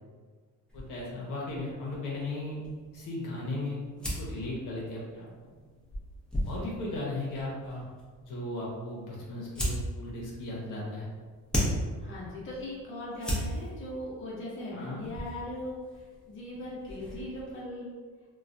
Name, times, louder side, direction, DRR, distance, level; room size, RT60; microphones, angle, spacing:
voice 1, 0.7-2.6 2.9-3.8 4.2-5.5 6.4-7.9 8.2-11.1 14.7-15.0, left 2 dB, 65° left, -4 dB, 0.8 m, -36 dB
sound 1, 0.7-17.6, equal, 5° left, 0.6 m, -38 dB
voice 2, 12.0-15.8 16.3-17.9, left 1 dB, 35° left, -6 dB, 0.8 m, -39 dB
3.1 x 2.3 x 2.5 m, 1.5 s
cardioid pair, 130°, 34 cm